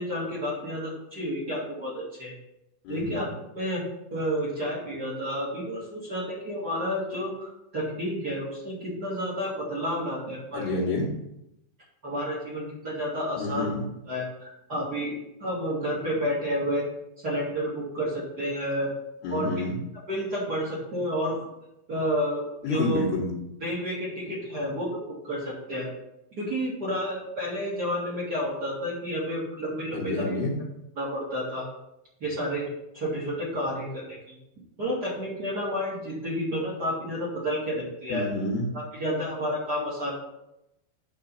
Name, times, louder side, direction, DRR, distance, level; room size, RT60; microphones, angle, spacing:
voice 1, 0.0-2.3 2.9-3.3 3.5-3.8 4.1-10.7 12.0-13.7 14.1-15.1 15.4-16.8 17.2-18.9 19.3-19.5 20.1-21.4 21.9-22.4 22.7-23.0 23.6-24.9 25.3-25.9 26.4-30.4 31.0-31.6 32.2-32.6 32.9-34.2 34.8-38.3 39.0-40.1, equal, 40° right, -6 dB, 1.4 m, -30 dB
voice 2, 2.9-3.3 10.5-11.2 13.4-13.9 19.2-19.8 22.6-23.3 29.9-30.5 38.1-38.7, left 2 dB, 80° left, -4 dB, 3.9 m, -29 dB
11.0 x 3.9 x 5.5 m, 0.86 s
omnidirectional pair, 5.6 m